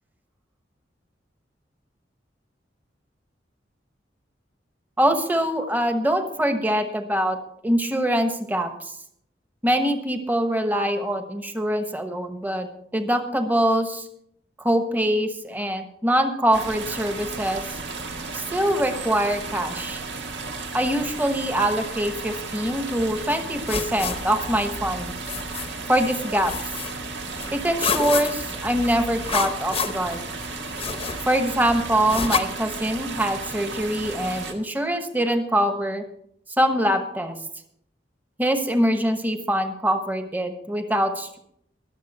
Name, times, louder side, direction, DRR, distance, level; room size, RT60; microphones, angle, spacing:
voice 1, 5.0-7.4 7.6-8.7 9.6-12.7 12.9-14.1 14.6-17.6 18.3-20.0 20.7-25.1 25.9-26.5 27.5-30.2 31.3-36.0 36.6-37.3 38.4-41.4, equal, 10° right, 7 dB, 1.2 m, -23 dB
sound 1, 16.5-34.5, right 3 dB, 85° right, 1.6 m, -34 dB
sound 2, 23.2-32.4, left 5 dB, 35° left, 0.9 m, -31 dB
21.5 x 7.4 x 4.3 m, 0.70 s
head